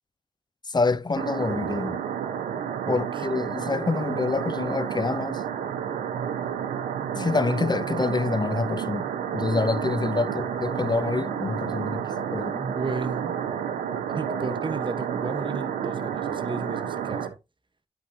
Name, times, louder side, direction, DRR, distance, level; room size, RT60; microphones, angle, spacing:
voice 1, 0.7-2.0 2.9-5.4 7.1-9.1 9.3-12.5, left 3 dB, 30° left, 0.8 m, -27 dB
sound 1, 1.2-17.3, right 8 dB, 85° right, 1.1 m, -30 dB
voice 2, 12.5-13.4 14.1-17.4, right 3 dB, 35° right, 1.1 m, -33 dB
11.0 x 5.0 x 2.8 m
supercardioid pair, 40°, 14 cm